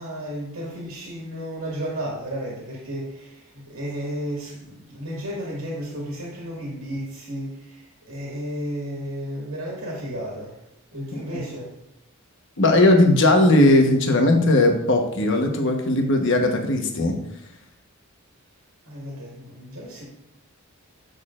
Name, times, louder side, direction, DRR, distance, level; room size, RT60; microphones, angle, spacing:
voice 1, 0.0-10.6 10.9-11.7 18.8-20.0, equal, 80° right, -4 dB, 1.9 m, -33 dB
voice 2, 12.6-17.1, left 1 dB, 60° left, 3 dB, 1.1 m, -18 dB
9.2 x 6.5 x 2.5 m, 0.79 s
head